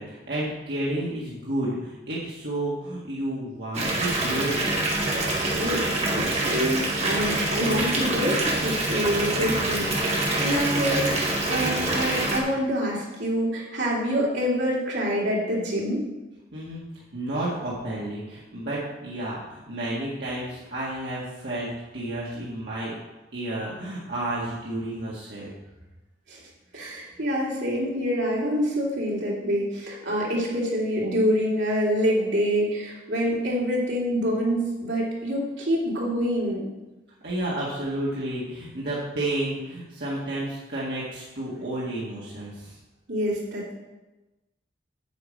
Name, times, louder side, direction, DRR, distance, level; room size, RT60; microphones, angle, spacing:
voice 1, 0.0-4.6 16.5-16.8 17.1-23.0 23.3-25.5 37.2-42.8, right 1 dB, 65° right, -7 dB, 1.9 m, -31 dB
Water tap faucet / Bathtub (filling or washing) / Fill (with liquid), 3.7-12.4, right 2 dB, 40° right, 1.9 m, -25 dB
voice 2, 5.5-16.0 26.3-26.4 26.7-36.7 43.1-43.7, equal, 85° right, -4 dB, 3.0 m, -26 dB
9.2 x 5.0 x 7.7 m, 1.1 s
head